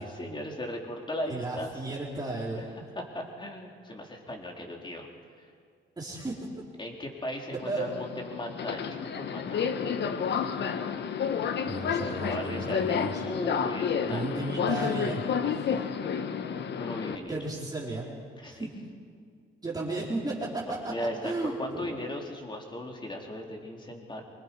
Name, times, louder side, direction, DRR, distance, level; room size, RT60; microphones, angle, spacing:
voice 1, 0.0-1.7 2.6-2.7 3.0-5.1 6.8-10.0 12.0-12.9 13.2-15.0 16.8-17.4 18.4-18.7 20.9-24.2, left 1 dB, 25° left, 1 dB, 3.9 m, -37 dB
voice 2, 1.2-2.6 6.0-6.4 7.7-7.9 11.6-13.2 14.0-15.7 17.3-18.1 18.5-18.7 19.6-20.9 21.2-21.9, right 2 dB, 20° right, -5 dB, 4.4 m, -34 dB
Subway metro underground, 7.6-17.2, left 7 dB, 60° left, 1.2 m, -30 dB
25.0 x 20.5 x 5.5 m, 2.1 s
cardioid pair, 90°, 20 cm